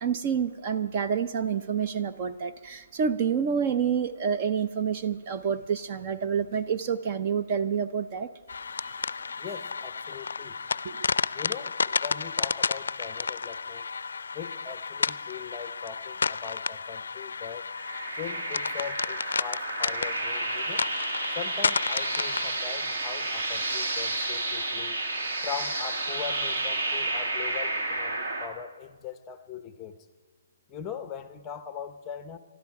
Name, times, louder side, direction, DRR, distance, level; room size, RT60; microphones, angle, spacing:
voice 1, 0.0-8.3 10.8-11.0, right 7 dB, 30° right, 8 dB, 0.6 m, -28 dB
sound 1, 8.5-22.6, left 5 dB, 80° left, 0.4 m, -32 dB
voice 2, 9.4-10.6 11.3-13.9 14.3-17.6 18.1-20.8 21.3-25.0 25.4-30.1 30.7-32.4, left 7 dB, 15° left, 10 dB, 0.8 m, -40 dB
sound 2, 17.7-28.5, right 2 dB, 60° right, 2.6 m, -31 dB
20.0 x 13.0 x 4.8 m, 1.4 s
hypercardioid pair, 160°, 0 cm